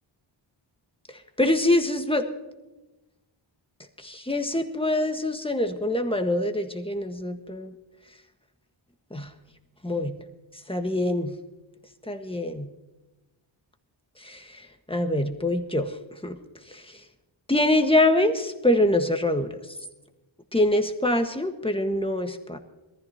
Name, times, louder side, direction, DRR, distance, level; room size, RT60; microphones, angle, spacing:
voice 1, 1.4-2.2 4.2-7.7 9.1-9.3 9.8-10.1 10.7-11.3 12.1-12.6 14.2-14.6 14.9-16.0 16.2-16.4 16.7-17.0 17.5-19.5 20.5-22.6, left 1 dB, 10° left, 5 dB, 1.5 m, -24 dB
22.5 x 14.5 x 2.9 m, 1.1 s
wide cardioid pair, 65°, 49 cm